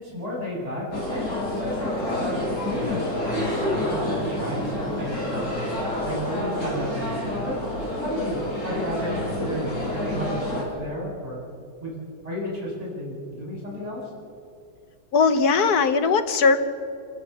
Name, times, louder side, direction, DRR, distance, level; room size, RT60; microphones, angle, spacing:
voice 1, 0.0-2.5 2.9-7.5 8.0-11.4 11.8-12.0 12.2-14.0, equal, 20° right, -6 dB, 8.0 m, -32 dB
sound 1, 0.9-10.6, left 1 dB, 50° left, 4.8 m, -28 dB
voice 2, 2.7-3.1 8.0-8.1 15.1-16.6, left 5 dB, 70° left, 9 dB, 1.7 m, -20 dB
27.0 x 16.5 x 7.2 m, 2.5 s
omnidirectional pair, 1.7 m